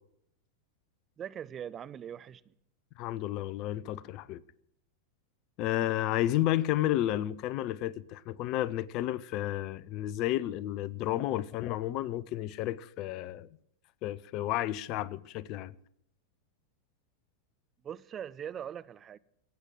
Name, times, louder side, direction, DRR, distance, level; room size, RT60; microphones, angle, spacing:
voice 1, 1.2-2.4 17.8-19.2, right 9 dB, 25° right, 0.5 m, -41 dB
voice 2, 3.0-4.4 5.6-13.5 14.0-15.7, left 14 dB, 40° left, 0.6 m, -32 dB
17.0 x 8.2 x 8.9 m
figure-of-eight pair, 90°, 0 cm